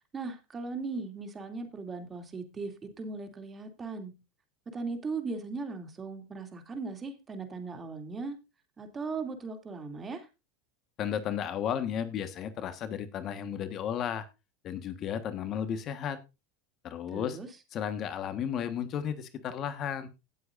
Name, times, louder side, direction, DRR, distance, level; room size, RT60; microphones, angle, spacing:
voice 1, 0.1-4.1 4.7-8.4 8.8-10.3 17.1-17.5, right 4 dB, 25° right, 2.6 m, -38 dB
voice 2, 11.0-14.3 14.6-16.2 16.8-17.4 17.7-20.1, left 9 dB, 40° left, 1.4 m, -33 dB
17.5 x 8.2 x 2.6 m
supercardioid pair, 110°, 0 cm